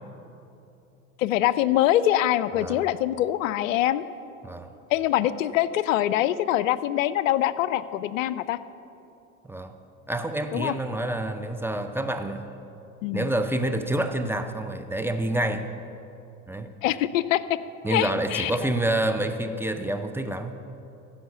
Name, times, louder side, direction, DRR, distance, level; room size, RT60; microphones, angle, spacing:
voice 1, 1.2-4.0 4.9-8.6 10.5-10.7 13.0-13.3 16.8-17.4 17.9-18.5, left 13 dB, 70° left, 16 dB, 0.5 m, -24 dB
voice 2, 2.6-2.9 4.4-4.7 9.4-9.7 10.1-12.5 13.1-15.7 16.5-16.7 17.8-20.6, right 1 dB, 5° right, 6 dB, 0.6 m, -28 dB
15.0 x 5.7 x 6.7 m, 2.9 s
figure-of-eight pair, 70°, 41 cm